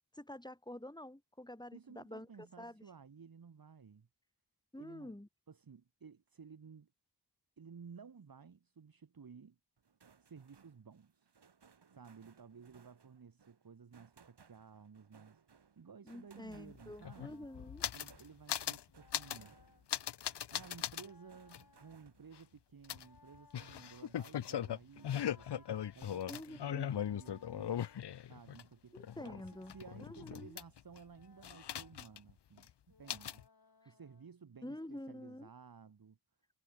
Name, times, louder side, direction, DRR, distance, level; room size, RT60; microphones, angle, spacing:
voice 1, 0.1-2.8 4.7-5.3 16.0-17.8 26.3-26.9 28.9-29.7 30.0-30.6 34.6-35.5, left 1 dB, 10° left, 3.4 m, -48 dB
voice 2, 1.7-4.1 4.8-5.1 5.5-6.9 7.6-9.6 10.2-11.4 11.9-15.4 15.8-17.5 17.9-19.6 20.5-27.7 28.3-29.0 29.2-36.2, right 6 dB, 60° right, 1.4 m, -56 dB
sound 1, 9.8-22.5 22.9-24.1, right 6 dB, 80° right, 2.3 m, -66 dB
sound 2, 16.5-16.6 16.8-18.2 18.5-18.8 19.1-19.5 19.9-21.1 21.5-21.6 22.9-28.6 29.0-31.0 31.4-32.3 32.6-32.7 33.1-33.4, left 10 dB, 85° left, 0.7 m, -39 dB
sound 3, 16.9-18.0 18.9-19.9 20.9-22.1 22.9-24.1 24.9-26.0 26.9-28.0 28.9-30.3 30.9-32.0 32.9-34.3, left 4 dB, 60° left, 6.0 m, -66 dB
wide cardioid pair, 65°, 40 cm